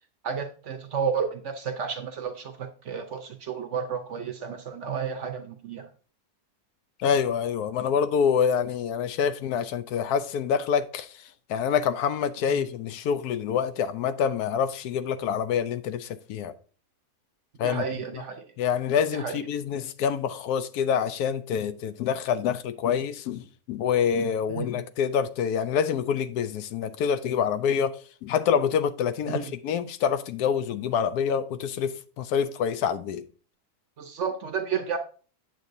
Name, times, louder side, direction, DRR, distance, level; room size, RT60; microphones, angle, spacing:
voice 1, 0.2-5.9 12.5-12.6 17.6-18.5 19.1-19.5 24.5-24.8 29.3-29.5 34.0-35.0, right 6 dB, 55° right, 0.9 m, -32 dB
voice 2, 7.0-11.1 11.5-16.5 17.6-17.8 18.6-33.2, left 7 dB, 75° left, 1.1 m, -26 dB
9.0 x 6.9 x 2.6 m
omnidirectional pair, 1.7 m